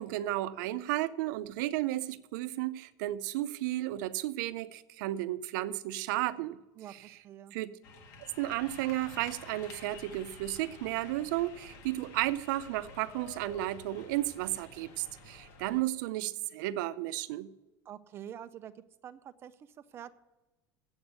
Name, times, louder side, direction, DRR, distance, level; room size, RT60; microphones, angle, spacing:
voice 1, 0.0-6.6 7.5-7.7 8.4-17.5, right 15 dB, 90° right, 0.6 m, -33 dB
voice 2, 6.8-7.6 17.8-20.1, right 10 dB, 25° right, 0.5 m, -47 dB
sound 1, 7.8-15.8, left 3 dB, 65° left, 1.8 m, -51 dB
8.0 x 7.9 x 8.1 m
cardioid pair, 175°, 10 cm